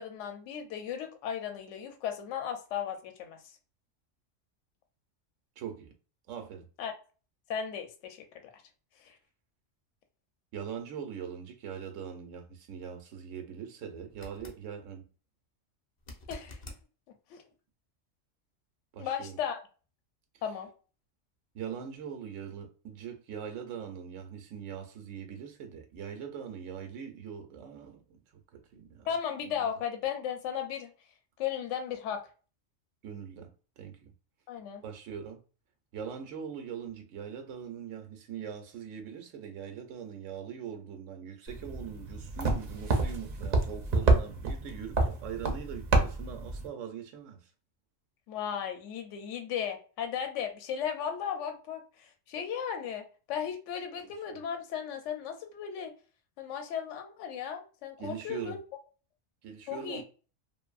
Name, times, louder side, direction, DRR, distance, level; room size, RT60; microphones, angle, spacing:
voice 1, 0.0-3.4 6.8-6.9 7.5-8.2 9.0-9.1 16.3-16.6 17.3-17.4 19.0-19.6 20.4-20.7 29.1-30.9 31.4-32.2 34.5-34.8 48.3-55.9 56.4-58.6 59.7-60.0, left 8 dB, 75° left, 0.9 m, -35 dB
voice 2, 5.6-5.9 6.3-6.7 10.5-15.1 18.9-19.4 21.5-28.2 28.5-29.1 29.4-29.7 33.0-34.1 34.8-35.4 35.9-47.5 54.0-54.4 58.0-58.6 59.4-60.0, right 8 dB, 85° right, 1.0 m, -42 dB
sound 1, 14.1-14.6 16.0-16.8 19.8-19.9, left 2 dB, 45° left, 0.5 m, -47 dB
sound 2, 41.5-46.7, right 3 dB, 55° right, 0.5 m, -29 dB
2.6 x 2.5 x 2.3 m
omnidirectional pair, 1.3 m